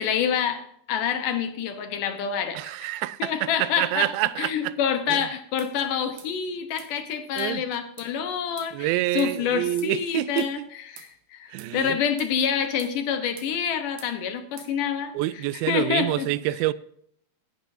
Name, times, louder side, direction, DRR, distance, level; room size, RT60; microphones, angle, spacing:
voice 1, 0.0-2.8 3.2-16.3, left 7 dB, 70° left, 2.5 m, -27 dB
voice 2, 2.6-4.7 5.1-5.2 7.4-7.6 8.7-10.5 11.5-12.0 15.2-16.7, right 16 dB, 90° right, 2.4 m, -27 dB
sound 1, 5.6-5.7 6.2-6.3 6.8-6.9 7.4-7.5 8.0-8.1 8.6-8.7 9.2-9.3 9.8-9.9 10.4-10.5 11.0-11.1 11.6-11.7 12.2-12.3 12.8-13.0 13.4-13.5 14.0-14.1 14.6-14.7, right 8 dB, 70° right, 2.9 m, -47 dB
17.0 x 10.5 x 2.7 m
omnidirectional pair, 4.2 m